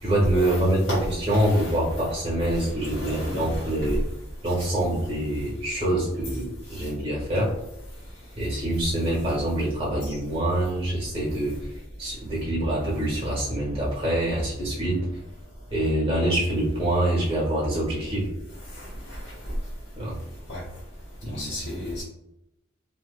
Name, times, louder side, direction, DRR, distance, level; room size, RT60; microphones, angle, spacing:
voice 1, 0.0-4.0 4.4-7.5 8.4-11.5 12.0-15.0 15.7-18.3 20.0-20.2 21.2-21.6, right 1 dB, 25° right, -5 dB, 1.3 m, -25 dB
voice 2, 2.8-3.6 18.8-19.2 20.5-20.6 21.3-22.0, left 1 dB, 60° left, -9 dB, 1.1 m, -34 dB
3.3 x 2.8 x 2.2 m, 0.86 s
head